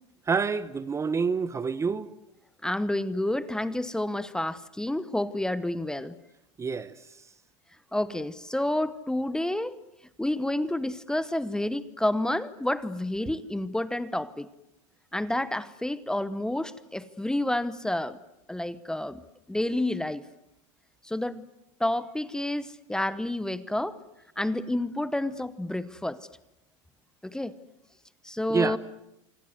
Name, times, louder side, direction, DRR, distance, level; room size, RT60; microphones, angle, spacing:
voice 1, 0.3-2.1 6.6-7.2 28.5-28.8, right 5 dB, 20° right, 1.0 m, -28 dB
voice 2, 2.6-6.1 7.9-9.8 10.2-14.5 15.1-18.2 18.5-19.2 19.5-20.2 21.0-21.5 21.8-24.0 24.4-26.2 27.2-27.5 28.2-28.8, left 1 dB, 5° left, 1.0 m, -29 dB
26.5 x 24.5 x 8.0 m
supercardioid pair, 120°, 16 cm